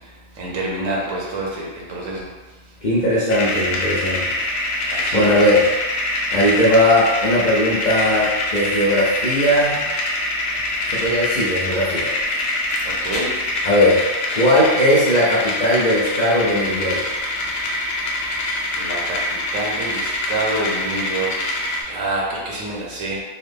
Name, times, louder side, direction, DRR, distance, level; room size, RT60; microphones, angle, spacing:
voice 1, 0.4-2.3 4.9-5.4 12.8-13.3 18.8-21.5 21.8-23.2, right 2 dB, 90° right, -3 dB, 1.2 m, -27 dB
voice 2, 2.8-4.3 5.1-5.6 6.3-9.8 10.9-12.1 13.6-14.0 14.3-17.0, left 1 dB, 50° left, -6 dB, 0.6 m, -18 dB
sound 1, 3.3-21.8, left 1 dB, 85° left, 1.0 m, -24 dB
3.9 x 2.0 x 3.3 m, 1.2 s
omnidirectional pair, 1.3 m